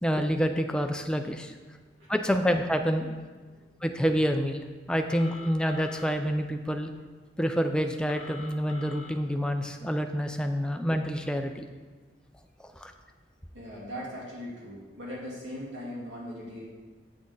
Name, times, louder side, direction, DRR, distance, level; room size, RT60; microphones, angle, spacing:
voice 1, 0.0-1.5 2.1-3.1 3.8-4.6 4.9-6.9 7.4-11.6 12.8-12.9, equal, 5° left, 5 dB, 0.4 m, -27 dB
Telephone, 5.1-6.1 8.1-9.1, left 4 dB, 35° left, 0.9 m, -45 dB
voice 2, 13.5-16.6, equal, 90° right, -6 dB, 2.6 m, -39 dB
8.4 x 6.2 x 3.9 m, 1.4 s
head